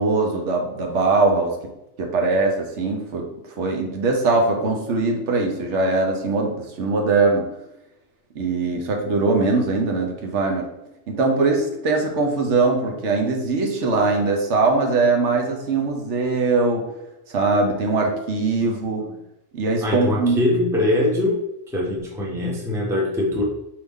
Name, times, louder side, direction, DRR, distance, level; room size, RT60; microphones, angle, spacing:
voice 1, 0.0-1.5 2.0-3.3 3.6-7.5 8.4-10.7 11.1-16.8 17.3-19.0 19.5-20.5, right 3 dB, 70° right, 2 dB, 1.1 m, -21 dB
voice 2, 18.6-19.1 19.8-21.4 21.7-23.4, left 1 dB, 5° right, -2 dB, 0.7 m, -23 dB
4.8 x 2.9 x 3.5 m, 0.88 s
omnidirectional pair, 1.3 m